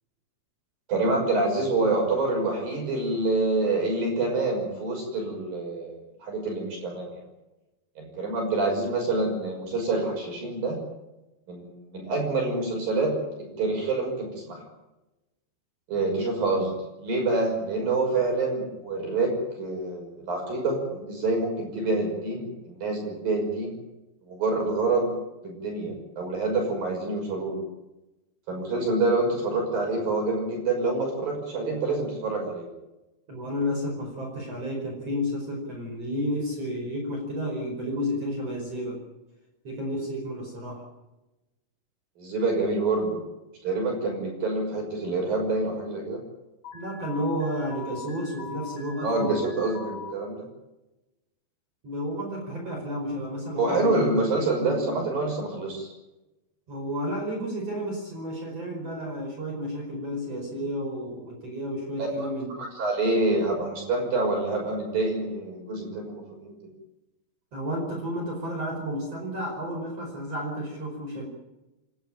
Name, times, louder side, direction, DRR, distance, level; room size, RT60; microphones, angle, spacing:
voice 1, 0.9-7.2 8.0-10.8 11.5-14.6 15.9-16.7 17.0-23.8 24.3-25.1 25.4-27.6 28.5-32.7 42.2-43.2 43.6-46.2 49.0-50.4 53.6-55.9 62.0-62.3 62.5-66.6, right 2 dB, 50° right, 1 dB, 7.4 m, -27 dB
voice 2, 33.3-39.0 39.6-40.9 46.7-49.4 51.8-54.8 56.7-62.6 67.5-71.3, equal, 35° right, 0 dB, 5.9 m, -32 dB
Alarm, 46.6-50.1, left 6 dB, 60° left, 7.7 m, -41 dB
28.5 x 13.5 x 9.0 m, 1.0 s
omnidirectional pair, 5.4 m